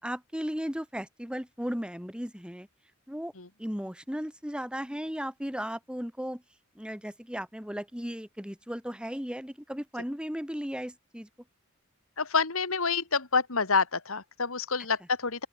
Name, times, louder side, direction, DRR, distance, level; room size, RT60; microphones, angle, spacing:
voice 1, 0.0-2.7 3.1-3.3 3.6-6.4 6.7-11.3, equal, 5° right, 4.5 m, -36 dB
voice 2, 12.2-15.5, left 4 dB, 75° left, 2.8 m, -28 dB
open air
head